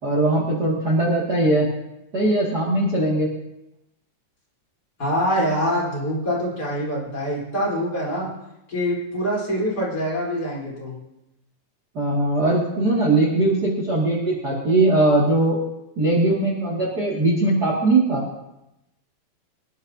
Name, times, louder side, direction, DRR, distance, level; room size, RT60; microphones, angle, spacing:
voice 1, 0.0-1.7 2.1-3.3 11.9-15.6 16.0-18.2, right 2 dB, 30° right, -4 dB, 2.4 m, -20 dB
voice 2, 5.0-8.3 8.7-11.0, equal, 30° left, -6 dB, 4.3 m, -25 dB
25.0 x 11.0 x 2.8 m, 0.90 s
omnidirectional pair, 4.0 m